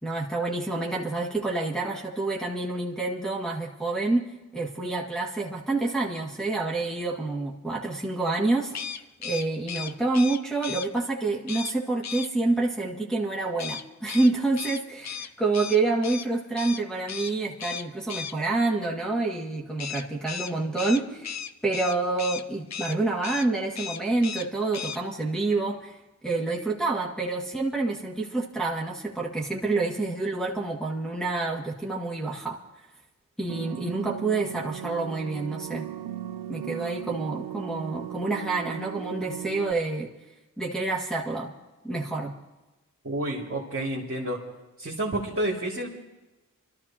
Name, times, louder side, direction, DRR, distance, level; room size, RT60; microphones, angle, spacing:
voice 1, 0.0-4.2 4.5-21.4 21.6-26.0 26.2-32.6 33.4-35.9 36.5-40.1 40.6-41.5 41.8-42.3, right 3 dB, ahead, -5 dB, 2.1 m, -28 dB
sound 1, 8.7-10.9 11.5-11.7 12.0-12.3 13.6-16.3 16.6-16.8 17.1-17.3 17.6-18.3 19.8-22.4 22.7-23.0 23.2-23.5 23.7-24.5 24.7-25.0, left 7 dB, 55° left, 0.6 m, -35 dB
sound 2, 33.5-39.7, right 13 dB, 80° right, 0.7 m, -37 dB
voice 2, 43.0-44.4 44.8-45.9, right 1 dB, 40° right, -4 dB, 2.4 m, -29 dB
26.5 x 13.0 x 2.9 m, 1.1 s
cardioid pair, 50°, 33 cm